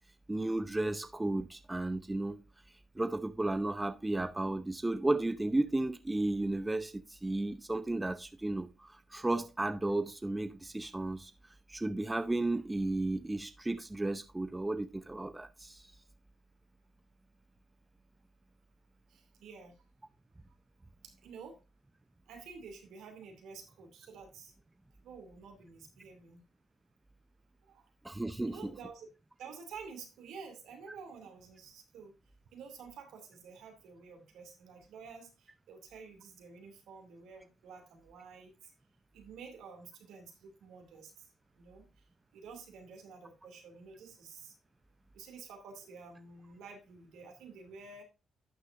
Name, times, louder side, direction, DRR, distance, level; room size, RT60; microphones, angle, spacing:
voice 1, 0.3-2.4 3.0-11.3 11.7-15.8 28.0-28.6, right 2 dB, 15° right, 0.7 m, -33 dB
voice 2, 19.1-19.8 21.0-21.6 22.3-24.5 25.0-26.4 27.6-27.9 28.4-29.1 29.4-32.1 32.5-38.7 39.1-41.3 41.6-41.8 42.3-44.5 45.1-48.0, right 5 dB, 80° right, 2.7 m, -50 dB
11.5 x 6.7 x 2.6 m
cardioid pair, 90°, 0 cm